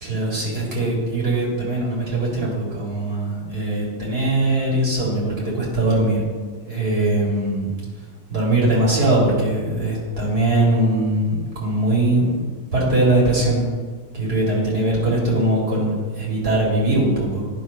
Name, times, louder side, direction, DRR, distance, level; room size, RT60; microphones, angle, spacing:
voice 1, 0.0-6.3 6.6-7.7 8.3-12.4 12.7-13.7 14.1-17.4, right 2 dB, 70° right, -5 dB, 2.9 m, -21 dB
10.5 x 4.0 x 5.5 m, 1.4 s
omnidirectional pair, 1.7 m